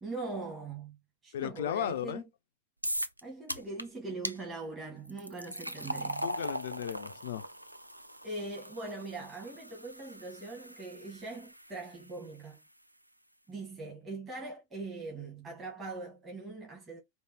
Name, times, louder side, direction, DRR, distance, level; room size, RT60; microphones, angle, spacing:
voice 1, 0.0-1.0 1.2-2.3 3.2-6.3 8.2-12.6 13.5-17.0, right 3 dB, 20° right, 2.0 m, -41 dB
voice 2, 1.3-2.2 6.2-7.5, left 10 dB, 60° left, 0.5 m, -35 dB
sound 1, 2.8-3.2 3.5-3.8 4.2-4.4 5.1-12.2, equal, 85° right, 0.4 m, -40 dB
4.7 x 2.7 x 2.9 m
figure-of-eight pair, 90°, 0 cm